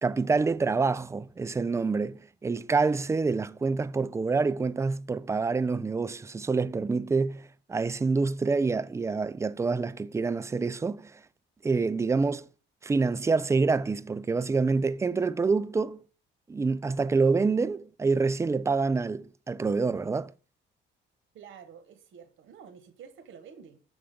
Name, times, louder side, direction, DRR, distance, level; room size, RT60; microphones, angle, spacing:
voice 1, 0.0-11.2 11.6-12.5 12.8-16.0 16.5-20.3, right 4 dB, 15° right, 0.3 m, -27 dB
voice 2, 21.3-23.8, right 7 dB, 80° right, 1.3 m, -49 dB
6.9 x 3.9 x 5.1 m
cardioid pair, 90°, 20 cm